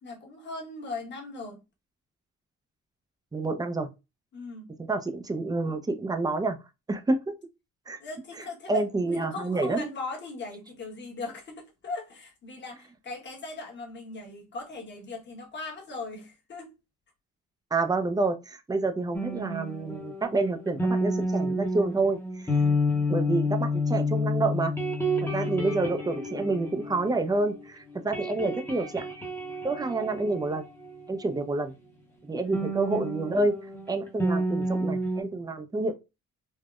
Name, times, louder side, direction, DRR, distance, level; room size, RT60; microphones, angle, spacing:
voice 1, 0.0-1.6 4.3-4.8 8.0-16.7 25.3-25.6 32.4-32.6, left 3 dB, 35° left, 1.1 m, -39 dB
voice 2, 3.3-3.9 4.9-6.6 6.9-7.2 7.9-8.0 8.7-9.9 17.7-22.2 22.4-22.6 23.1-24.7 25.3-29.1 29.6-30.6 31.1-31.7 32.2-33.6 33.9-35.9, right 3 dB, 15° right, 0.5 m, -28 dB
sound 1, 19.1-27.6 27.9-31.4 32.5-35.2, left 1 dB, 5° left, 0.8 m, -30 dB
3.5 x 2.1 x 2.3 m
cardioid pair, 90°, 30 cm